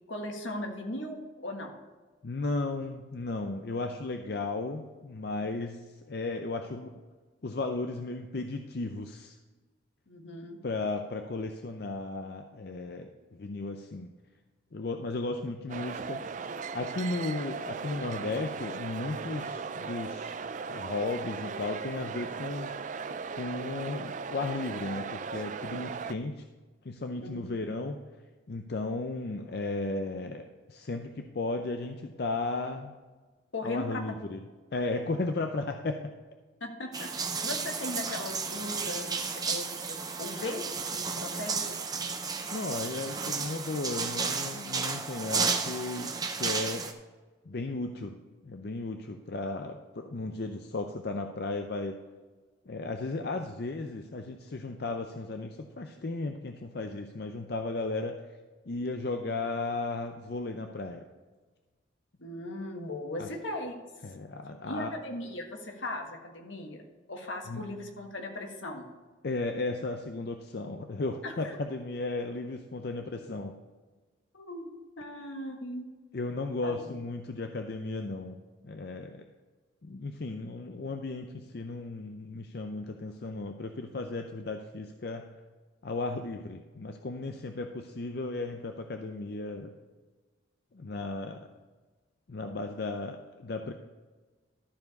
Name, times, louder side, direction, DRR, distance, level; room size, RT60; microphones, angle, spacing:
voice 1, 0.1-1.7 5.4-5.5 10.1-10.6 27.2-27.5 33.5-34.0 36.6-40.6 40.9-41.8 62.2-63.7 64.6-66.8 67.1-68.9 71.2-71.5 74.3-75.9 76.6-76.9, left 1 dB, 75° left, 2 dB, 1.6 m, -38 dB
voice 2, 2.2-6.9 7.4-9.4 10.6-14.1 14.7-16.2 16.7-20.3 20.7-22.8 23.3-26.4 26.8-28.0 28.5-33.0 33.6-34.4 34.7-36.1 42.5-46.9 47.5-48.2 48.4-51.9 52.7-58.2 58.7-61.1 63.2-63.3 64.0-64.9 67.5-67.6 69.2-73.5 76.1-79.2 79.8-85.3 85.8-89.7 90.7-91.5 92.3-93.7, left 3 dB, 55° left, 5 dB, 0.5 m, -35 dB
sound 1, 15.7-26.1, right 5 dB, 40° right, 0.3 m, -38 dB
sound 2, 36.9-46.9, right 5 dB, 20° right, 0.7 m, -33 dB
13.0 x 4.8 x 5.3 m, 1.3 s
head